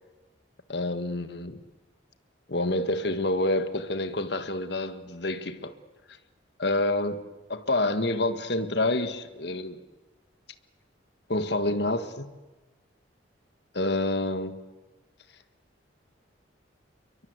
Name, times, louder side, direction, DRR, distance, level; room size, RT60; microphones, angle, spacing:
voice 1, 0.7-1.6 2.5-5.7 6.6-7.2 7.5-9.8 11.3-12.3 13.7-14.6, left 2 dB, 60° left, 1.7 m, -28 dB
29.5 x 23.0 x 8.2 m
head